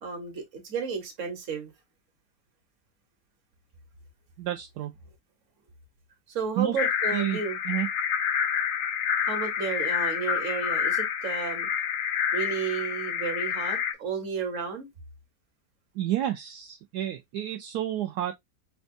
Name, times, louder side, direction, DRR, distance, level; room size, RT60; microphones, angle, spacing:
voice 1, 0.0-1.7 6.3-7.6 9.2-11.7 12.3-14.9, right 5 dB, 50° right, 1.3 m, -32 dB
voice 2, 4.4-4.9 6.6-6.8 7.1-7.4 7.6-7.9 15.9-18.3, right 12 dB, 75° right, 1.1 m, -30 dB
sound 1, 6.8-13.9, left 8 dB, 70° left, 0.8 m, -28 dB
5.1 x 2.3 x 2.5 m
omnidirectional pair, 1.8 m